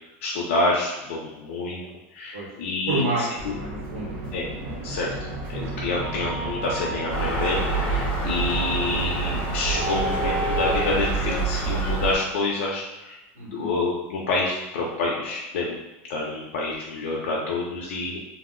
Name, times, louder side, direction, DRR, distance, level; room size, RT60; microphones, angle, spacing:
voice 1, 0.2-1.8 2.1-3.0 3.4-3.5 4.3-4.5 4.8-15.8 16.1-18.2, left 2 dB, 85° left, -3 dB, 0.5 m, -28 dB
voice 2, 2.9-4.3 8.5-8.6 13.4-13.7, right 2 dB, 70° right, -7 dB, 1.0 m, -29 dB
sound 1, 3.4-11.8, right 2 dB, 50° right, 0.6 m, -32 dB
Gull seagull, 7.1-12.1, right 3 dB, 20° left, 0.6 m, -27 dB
2.8 x 2.0 x 3.7 m, 0.99 s
supercardioid pair, 180°, 7 cm